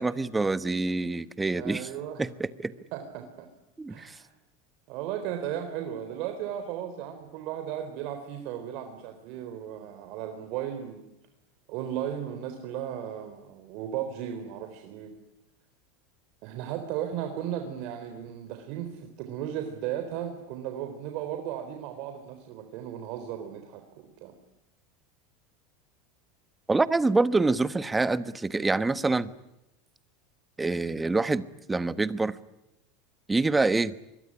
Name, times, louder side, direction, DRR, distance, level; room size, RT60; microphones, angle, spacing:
voice 1, 0.0-1.9 2.2-2.7 3.8-4.1 26.7-29.3 30.6-32.4 33.3-33.9, right 3 dB, 10° right, 14 dB, 1.2 m, -26 dB
voice 2, 1.5-2.3 2.9-3.5 3.9-4.3 4.9-11.1 11.7-15.2 16.4-24.3, right 10 dB, 60° right, 6 dB, 3.8 m, -35 dB
25.5 x 22.5 x 9.9 m, 0.87 s
supercardioid pair, 120°, 0 cm